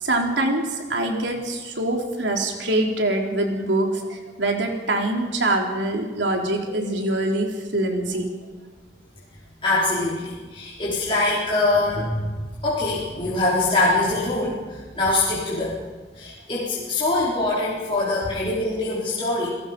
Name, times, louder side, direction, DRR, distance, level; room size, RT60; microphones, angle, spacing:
voice 1, 0.0-8.3, right 1 dB, 80° right, 1 dB, 3.6 m, -24 dB
voice 2, 9.6-12.3 12.6-15.8 16.1-19.5, left 2 dB, 30° left, -8 dB, 4.2 m, -23 dB
29.0 x 17.5 x 5.3 m, 1.4 s
head